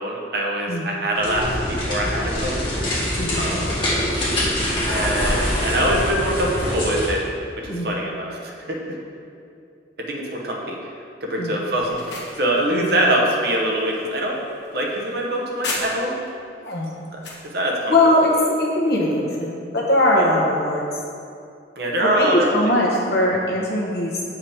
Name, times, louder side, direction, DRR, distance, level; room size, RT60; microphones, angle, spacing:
voice 1, 0.0-2.8 3.4-3.9 4.9-7.3 7.6-9.0 10.0-10.8 11.2-12.1 12.4-14.4 14.7-16.3 17.5-17.9 20.2-20.3 21.8-22.7, right 1 dB, 60° right, -1 dB, 0.9 m, -24 dB
sound 1, 1.1-7.2, left 1 dB, 30° left, 1.5 m, -24 dB
voice 2, 3.2-3.5 7.7-7.9 11.3-11.6 12.7-12.9 16.6-16.9 17.9-18.3 18.6-20.8 22.0-24.2, left 1 dB, 60° left, -4 dB, 1.2 m, -20 dB
sound 2, 11.7-16.3 16.7-17.5, left 2 dB, 75° left, 1.0 m, -35 dB
7.3 x 4.8 x 3.5 m, 2.4 s
head